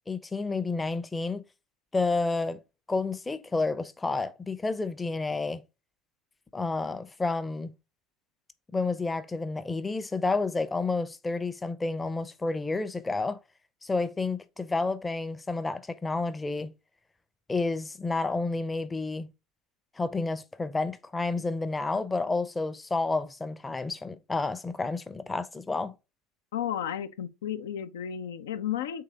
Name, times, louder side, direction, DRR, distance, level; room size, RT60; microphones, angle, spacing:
voice 1, 0.1-1.4 1.9-2.6 2.9-5.6 6.5-7.7 8.7-13.4 13.8-16.7 17.5-19.3 20.0-26.0, left 3 dB, 20° left, 0.6 m, -30 dB
voice 2, 26.5-29.0, left 10 dB, 75° left, 0.4 m, -33 dB
3.8 x 3.2 x 3.4 m
hypercardioid pair, 65°, 0 cm